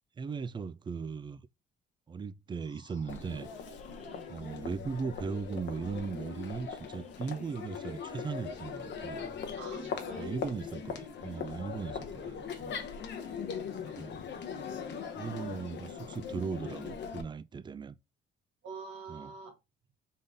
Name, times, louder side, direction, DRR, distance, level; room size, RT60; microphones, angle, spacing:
voice 1, 0.2-1.4 2.1-3.5 4.3-9.3 10.2-12.9 14.0-14.2 15.1-18.0 19.1-19.3, right 5 dB, 25° right, 0.3 m, -38 dB
sound 1, 2.5-12.0, left 4 dB, 35° left, 1.0 m, -61 dB
Crowd, 3.1-17.2, left 6 dB, 65° left, 0.8 m, -40 dB
voice 2, 9.6-10.4 13.8-14.1 18.6-19.5, right 4 dB, 75° right, 1.9 m, -45 dB
3.9 x 3.6 x 3.3 m
cardioid pair, 90°, 20 cm